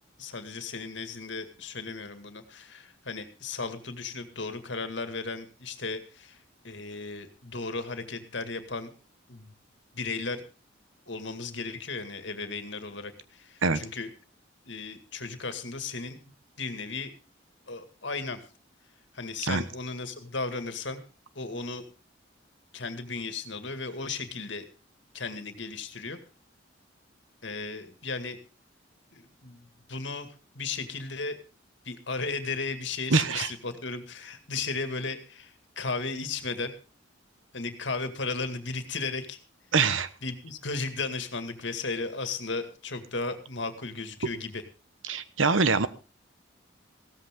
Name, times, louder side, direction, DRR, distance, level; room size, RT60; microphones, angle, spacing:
voice 1, 0.2-6.4 6.6-8.9 9.3-9.5 9.9-10.4 11.1-14.1 14.7-16.2 16.6-17.1 17.7-18.4 19.1-21.0 21.4-21.8 22.7-24.7 25.1-26.2 27.4-28.4 29.1-30.3 30.5-31.4 31.8-36.7 37.5-39.4 40.2-44.6, left 4 dB, 65° left, 9 dB, 2.2 m, -35 dB
voice 2, 33.1-33.5 39.7-40.1 45.1-45.9, right 4 dB, 85° right, 14 dB, 1.1 m, -24 dB
16.0 x 13.5 x 3.7 m, 0.34 s
head